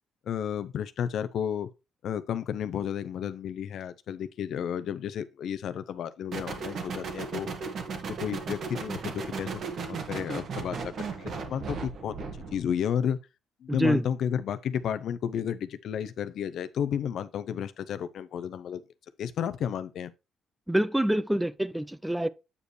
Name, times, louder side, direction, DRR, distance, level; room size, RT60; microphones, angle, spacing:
voice 1, 0.3-1.7 2.0-7.5 8.0-12.1 12.5-13.2 13.6-18.8 19.2-20.1, left 8 dB, 70° left, 0.6 m, -32 dB
sound 1, 6.3-12.7, right 4 dB, 60° right, 1.6 m, -36 dB
voice 2, 13.7-14.0 20.7-22.3, right 1 dB, 5° right, 0.4 m, -26 dB
8.3 x 5.1 x 3.1 m
cardioid pair, 90°, 0 cm